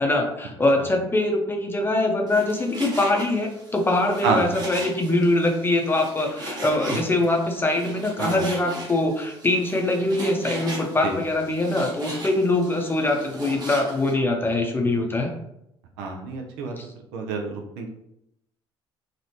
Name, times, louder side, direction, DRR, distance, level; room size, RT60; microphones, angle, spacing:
voice 1, 0.0-15.3 16.8-16.9, left 2 dB, 15° left, 1 dB, 0.7 m, -23 dB
Frying (food), 2.3-14.1, right 1 dB, 30° right, 1.1 m, -38 dB
voice 2, 4.2-4.5 8.2-8.5 11.0-11.2 16.0-16.7 17.1-17.9, right 4 dB, 65° right, 3 dB, 0.5 m, -27 dB
3.0 x 2.4 x 2.9 m, 0.81 s
figure-of-eight pair, 55°, 13 cm